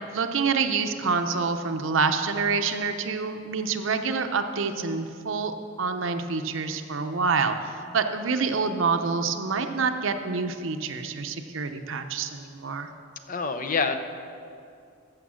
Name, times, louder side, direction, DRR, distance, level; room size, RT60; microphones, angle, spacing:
voice 1, 0.1-12.9, right 4 dB, 75° right, 7 dB, 0.7 m, -27 dB
voice 2, 13.3-14.0, left 4 dB, 40° left, 8 dB, 0.6 m, -26 dB
14.5 x 6.5 x 6.3 m, 2.5 s
head